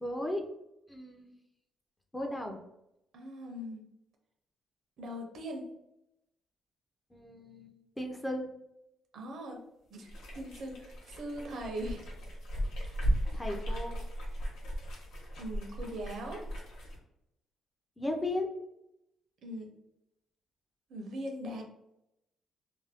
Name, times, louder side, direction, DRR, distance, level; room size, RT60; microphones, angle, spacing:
voice 1, 0.0-0.4 0.9-1.3 2.1-2.6 7.1-8.5 13.3-14.0 18.0-18.5, left 1 dB, 15° left, 2 dB, 0.5 m, -36 dB
voice 2, 3.1-3.8 5.0-5.7 9.1-9.6 9.9-12.0 15.4-16.5 19.4-19.7 20.9-21.6, equal, 65° right, 2 dB, 0.7 m, -40 dB
sound 1, 10.0-17.0, equal, 90° left, 0.8 m, -36 dB
2.5 x 2.2 x 3.4 m, 0.85 s
cardioid pair, 90°, 0 cm